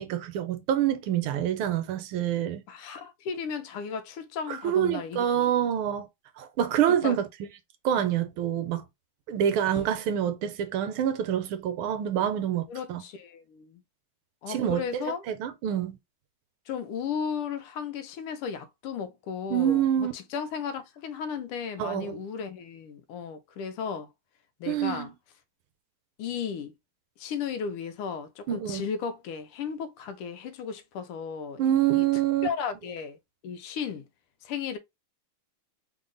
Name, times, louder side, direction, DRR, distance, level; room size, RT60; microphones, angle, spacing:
voice 1, 0.0-2.6 4.6-6.1 6.4-7.3 7.8-8.8 9.3-13.0 14.5-16.0 19.5-20.1 21.8-22.2 24.7-25.1 28.5-28.8 31.6-32.5, right 10 dB, 80° right, 1.4 m, -26 dB
voice 2, 2.7-5.5 7.0-7.2 8.0-8.1 12.7-13.8 14.4-15.2 16.7-24.1 24.6-25.1 26.2-26.7 27.2-32.0 32.4-33.2 33.4-34.0 34.4-34.8, left 6 dB, 80° left, 1.5 m, -35 dB
3.8 x 2.1 x 3.7 m
omnidirectional pair, 2.4 m